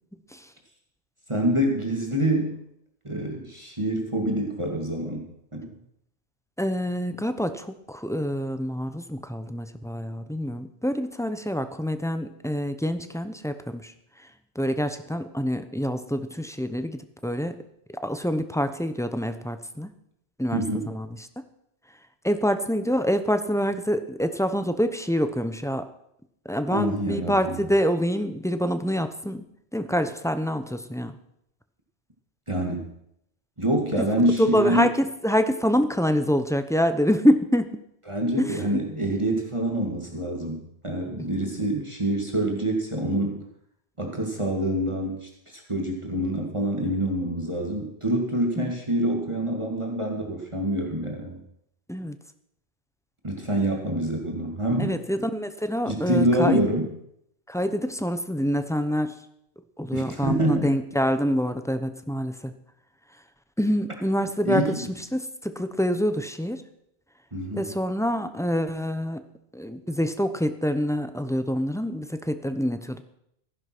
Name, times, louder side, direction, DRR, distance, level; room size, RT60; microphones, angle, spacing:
voice 1, 1.3-2.6 3.0-5.8 20.5-20.9 26.7-27.6 32.5-32.9 33.6-34.9 38.1-43.4 44.0-51.4 53.2-55.0 55.9-56.9 59.9-60.7 64.4-64.8 67.3-67.7, right 1 dB, 25° right, 0 dB, 2.3 m, -26 dB
voice 2, 6.6-13.9 14.5-17.6 18.0-19.9 20.4-20.6 20.9-21.3 22.2-25.9 26.4-29.4 29.7-31.2 34.0-34.1 34.4-37.7 38.4-38.8 48.6-48.7 51.9-52.2 54.8-56.6 57.5-59.1 59.8-62.5 63.6-64.9 65.1-66.6 67.5-69.2 69.5-73.0, equal, 5° left, 9 dB, 0.8 m, -26 dB
15.0 x 10.5 x 6.1 m, 0.75 s
omnidirectional pair, 1.1 m